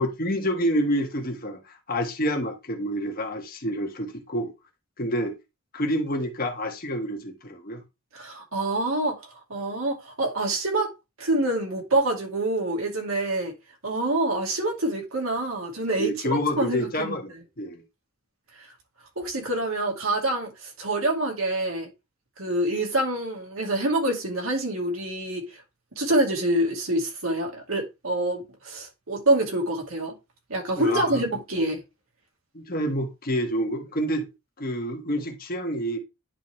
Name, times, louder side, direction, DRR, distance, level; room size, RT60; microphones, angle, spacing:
voice 1, 0.0-4.5 5.0-5.3 5.7-7.8 16.0-17.8 30.7-31.2 32.5-34.3 34.6-36.0, equal, 45° left, 1.3 m, -28 dB
voice 2, 8.1-10.9 11.2-13.5 13.8-17.2 18.6-18.7 19.2-21.9 22.4-25.4 26.0-30.1 30.5-31.8, right 1 dB, 80° right, 2.4 m, -26 dB
10.5 x 3.7 x 3.2 m
head